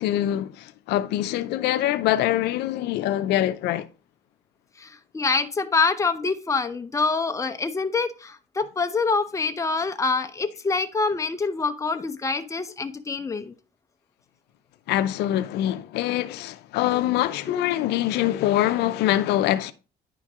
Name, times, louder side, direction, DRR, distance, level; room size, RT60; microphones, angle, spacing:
voice 1, 0.0-3.9 14.9-19.7, left 13 dB, 80° left, 0.6 m, -24 dB
voice 2, 4.8-13.5 17.5-17.6, left 4 dB, 20° left, 0.8 m, -26 dB
9.9 x 4.6 x 3.6 m
cardioid pair, 110°, 17 cm